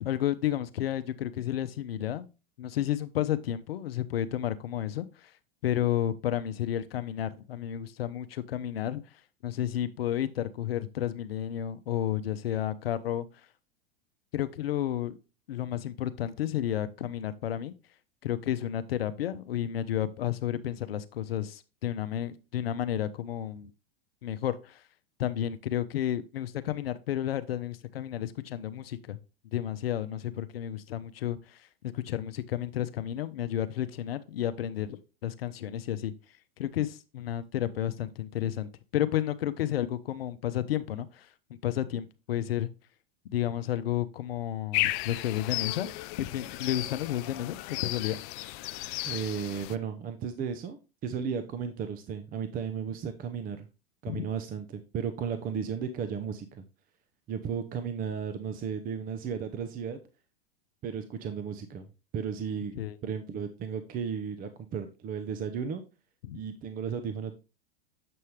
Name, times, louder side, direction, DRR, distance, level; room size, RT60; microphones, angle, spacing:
voice 1, 0.0-2.3 2.6-5.3 5.6-9.0 9.4-13.3 14.3-15.2 15.5-17.7 18.2-23.7 24.2-24.8 25.2-29.2 29.5-36.1 36.6-41.3 41.6-42.7 43.3-45.9 46.2-48.2 54.1-54.2 62.8-63.0 66.2-66.4, left 11 dB, 80° left, 0.7 m, -31 dB
sound 1, 44.7-49.8, left 18 dB, 45° left, 0.4 m, -34 dB
voice 2, 49.0-53.7 54.0-56.6 57.3-60.0 60.8-61.9 62.1-65.8 66.3-67.3, right 7 dB, 30° right, 0.8 m, -34 dB
7.7 x 5.5 x 3.2 m
hypercardioid pair, 105°, 29 cm